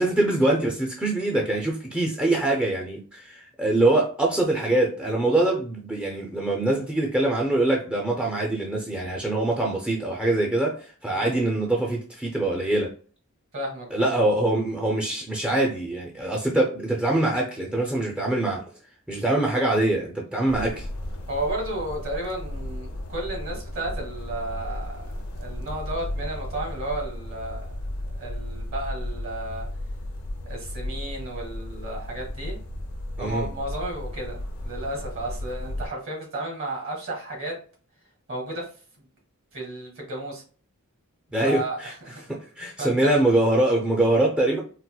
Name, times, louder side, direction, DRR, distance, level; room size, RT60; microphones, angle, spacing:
voice 1, 0.0-12.9 13.9-18.6 19.1-20.9 33.2-33.5 41.3-41.9 42.3-44.6, right 2 dB, 5° right, 0.4 m, -24 dB
voice 2, 11.1-11.5 13.5-14.2 21.3-27.7 28.2-29.7 30.4-32.6 33.2-37.6 38.3-38.7 39.5-40.4 41.4-42.2 42.8-43.2, right 1 dB, 60° right, 1.4 m, -33 dB
sound 1, 20.5-35.9, left 1 dB, 70° left, 0.6 m, -34 dB
4.1 x 2.1 x 2.2 m
head